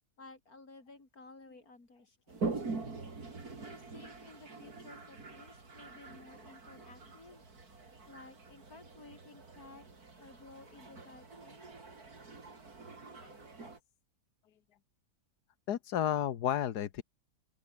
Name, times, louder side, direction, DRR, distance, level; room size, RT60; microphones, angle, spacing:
voice 1, 0.2-2.5 3.6-7.4 8.1-9.9 10.2-11.6, left 3 dB, 60° left, 5.1 m, -55 dB
Toilet flush, 2.3-13.8, right 3 dB, 65° right, 4.0 m, -44 dB
voice 2, 15.7-17.0, left 10 dB, 75° left, 1.6 m, -32 dB
open air
omnidirectional pair, 1.7 m